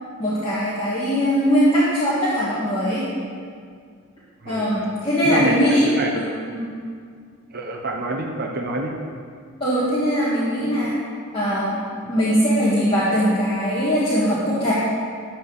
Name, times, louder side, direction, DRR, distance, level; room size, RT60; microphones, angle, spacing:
voice 1, 0.2-3.0 4.5-5.9 6.1-6.2 6.5-6.7 9.6-11.0 11.3-14.7, equal, 25° left, -10 dB, 1.9 m, -21 dB
voice 2, 4.4-4.7 5.2-6.2 7.5-8.9, right 2 dB, 45° right, -1 dB, 1.1 m, -26 dB
13.0 x 4.5 x 8.3 m, 2.1 s
head